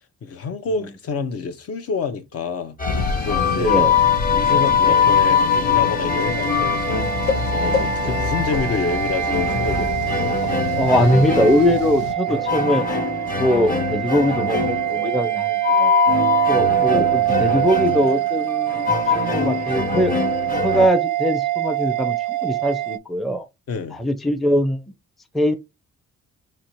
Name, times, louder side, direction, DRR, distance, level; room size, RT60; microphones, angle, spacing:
voice 1, 0.2-2.8 3.2-3.9 4.3-10.5 23.7-24.0, left 4 dB, 50° left, 0.7 m, -28 dB
sound 1, 2.8-12.1, left 6 dB, 75° left, 0.9 m, -29 dB
sound 2, 2.8-20.9, left 6 dB, 30° left, 1.1 m, -22 dB
voice 2, 3.6-3.9 8.0-8.2 10.8-12.8 13.4-15.9 16.5-20.1 20.6-23.5 23.9-24.8 25.3-25.5, equal, ahead, 0.5 m, -21 dB
sound 3, 6.1-23.0, right 15 dB, 85° right, 0.5 m, -24 dB
2.9 x 2.8 x 4.5 m
cardioid pair, 90°, 30 cm